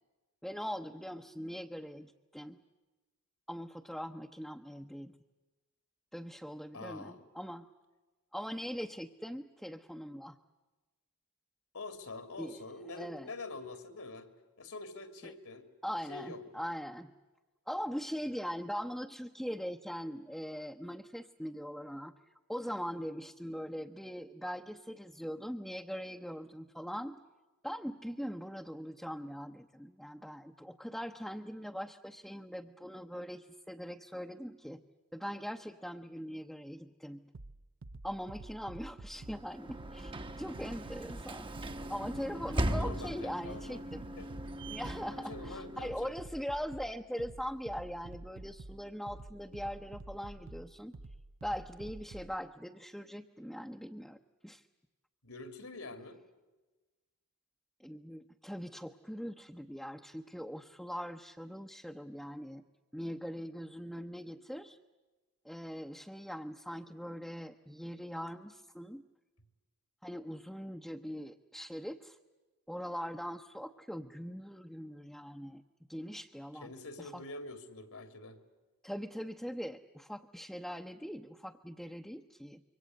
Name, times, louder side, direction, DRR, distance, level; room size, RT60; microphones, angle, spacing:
voice 1, 0.4-2.6 3.5-5.2 6.1-7.7 8.3-10.4 12.4-12.6 12.9-13.3 15.2-15.3 15.8-17.1 17.7-22.1 22.5-27.2 27.6-34.8 35.1-37.2 38.0-40.1 40.4-41.5 41.9-44.1 44.7-50.9 51.4-54.2 54.4-54.6 57.8-62.6 62.9-64.8 65.4-69.0 70.0-72.2 72.7-75.6 75.9-76.7 77.0-77.2 78.8-82.6, equal, ahead, 2 dB, 0.8 m, -41 dB
voice 2, 6.7-7.2 11.7-14.3 14.6-15.7 16.1-16.4 42.7-43.8 44.2-44.3 45.1-46.1 55.2-56.2 76.5-78.4, left 3 dB, 75° left, 9 dB, 2.9 m, -45 dB
sound 1, 37.3-52.4, right 2 dB, 60° right, 0.8 m, -49 dB
Sliding door / Slam, 39.2-46.2, right 1 dB, 25° right, 0.9 m, -39 dB
27.0 x 24.0 x 7.9 m, 1.2 s
head